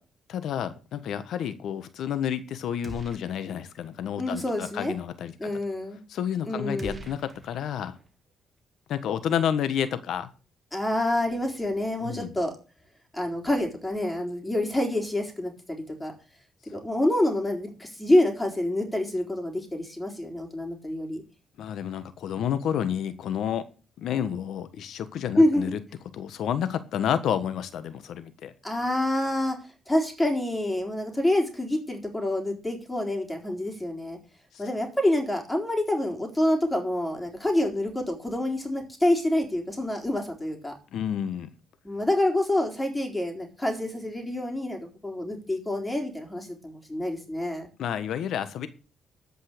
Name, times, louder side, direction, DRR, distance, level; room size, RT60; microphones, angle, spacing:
voice 1, 0.3-5.5 6.1-8.0 8.9-10.3 12.0-12.3 21.6-23.6 24.0-25.8 26.1-28.5 34.5-34.6 40.9-41.5 47.8-48.7, left 9 dB, 75° left, 12 dB, 1.3 m, -30 dB
sound 1, 2.8-3.7 4.0-4.1 6.8-8.1, right 2 dB, 25° right, 1.9 m, -43 dB
voice 2, 4.2-4.9 5.4-6.0 6.4-7.0 10.7-12.5 13.1-16.1 16.7-21.2 25.4-25.7 28.6-29.6 29.9-34.2 34.6-40.7 41.8-47.7, left 1 dB, 10° left, 2 dB, 4.0 m, -27 dB
14.0 x 5.6 x 6.7 m, 0.35 s
cardioid pair, 90°, 0 cm